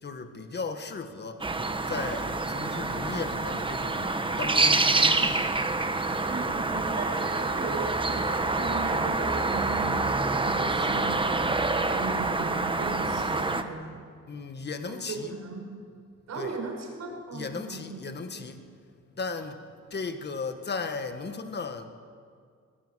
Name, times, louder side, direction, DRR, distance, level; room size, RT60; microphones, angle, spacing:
voice 1, 0.0-1.5 1.9-5.4 14.3-15.3 16.4-16.6 17.3-18.6 19.2-19.6 19.9-21.9, left 4 dB, 35° left, 7 dB, 1.8 m, -36 dB
sound 1, 1.4-13.6, right 3 dB, 15° right, 1.2 m, -27 dB
voice 2, 6.2-10.1 10.4-13.9 14.9-15.7 16.3-18.5, right 3 dB, 65° right, 1 dB, 6.2 m, -37 dB
22.0 x 20.0 x 8.1 m, 2.2 s
cardioid pair, 130°, 29 cm